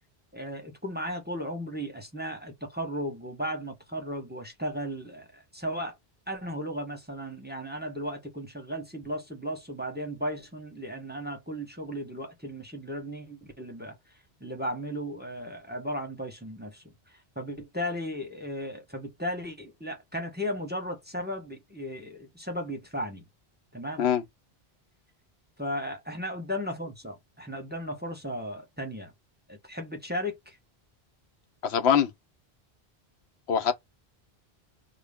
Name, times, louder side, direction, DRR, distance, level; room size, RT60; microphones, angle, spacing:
voice 1, 0.3-6.0 6.3-14.0 14.4-23.2 23.7-24.0 25.6-29.1 29.5-30.6, equal, 10° right, 0.8 m, -35 dB
voice 2, 31.6-32.1 33.5-33.7, left 8 dB, 85° left, 0.9 m, -23 dB
5.3 x 2.3 x 3.5 m
omnidirectional pair, 1.0 m